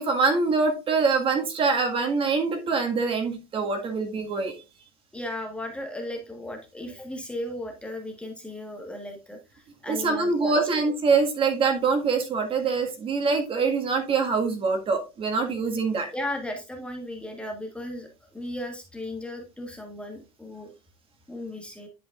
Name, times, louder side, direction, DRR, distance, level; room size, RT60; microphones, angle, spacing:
voice 1, 0.0-4.5 9.9-16.1, right 4 dB, 35° right, 4 dB, 1.8 m, -24 dB
voice 2, 5.1-10.9 16.1-20.7 21.3-21.9, left 1 dB, 5° left, 3 dB, 1.4 m, -36 dB
11.0 x 5.0 x 2.5 m, 0.29 s
supercardioid pair, 115°, 16 cm